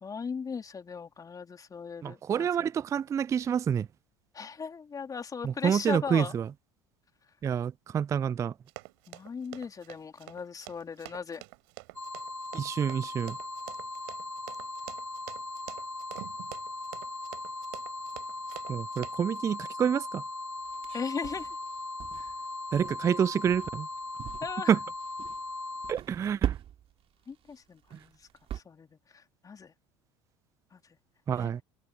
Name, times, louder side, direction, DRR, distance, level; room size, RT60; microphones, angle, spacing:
voice 1, 0.0-2.5 4.3-6.4 9.1-11.4 20.9-21.5 22.2-22.3 24.4-24.8 27.3-28.2 28.5-28.9 29.1-29.7 30.7-30.8 31.3-31.5, left 5 dB, 25° left, 3.3 m, -38 dB
voice 2, 2.0-3.9 5.4-6.5 7.4-8.5 12.5-13.4 18.7-20.2 22.7-23.9 24.7-24.8 25.9-26.5 31.3-31.6, right 8 dB, 20° right, 0.3 m, -28 dB
Run, 8.7-19.4, right 31 dB, 60° right, 6.1 m, -46 dB
sound 1, 11.9-25.9, left 2 dB, 85° left, 3.1 m, -39 dB
sound 2, 20.7-22.5 22.7-23.1 23.5-23.8 24.2-24.7 25.0-25.4 25.8-27.0 27.3-27.5 27.9-28.6, right 11 dB, 40° right, 2.7 m, -38 dB
figure-of-eight pair, 70°, 15 cm